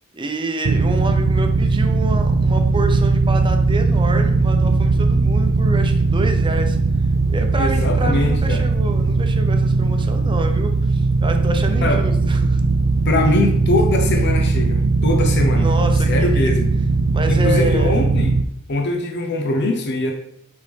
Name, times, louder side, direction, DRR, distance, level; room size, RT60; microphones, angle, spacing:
voice 1, 0.1-6.8 7.3-12.6 15.5-16.5 17.1-18.0, right 1 dB, 25° right, 5 dB, 0.7 m, -28 dB
sound 1, 0.6-18.4, right 3 dB, 90° right, 0.5 m, -18 dB
voice 2, 7.5-8.6 11.8-12.0 13.0-15.7 16.0-16.7 17.3-18.4 18.7-20.1, left 2 dB, 55° left, 3 dB, 0.7 m, -22 dB
6.5 x 5.3 x 3.4 m, 0.71 s
head